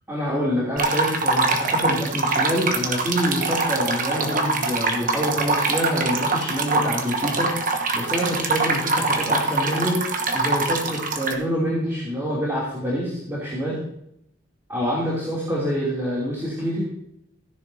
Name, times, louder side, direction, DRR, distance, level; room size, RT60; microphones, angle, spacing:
voice 1, 0.1-13.8 14.7-16.9, equal, 15° right, -8 dB, 3.0 m, -26 dB
sound 1, 0.8-11.3, right 3 dB, 45° right, 1.2 m, -24 dB
16.0 x 10.5 x 2.8 m, 0.76 s
head